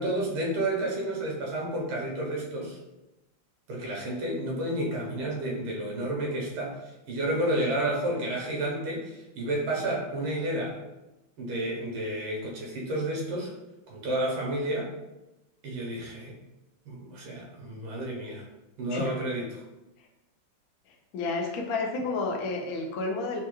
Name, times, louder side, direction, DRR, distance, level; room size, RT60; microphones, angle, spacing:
voice 1, 0.0-2.8 3.7-10.8 11.4-13.5 13.9-14.9 15.6-16.4 16.9-18.4 18.8-19.6, right 1 dB, 90° right, -2 dB, 1.8 m, -31 dB
voice 2, 21.1-23.4, left 3 dB, 90° left, 1 dB, 0.8 m, -30 dB
4.5 x 2.2 x 3.0 m, 0.98 s
omnidirectional pair, 2.3 m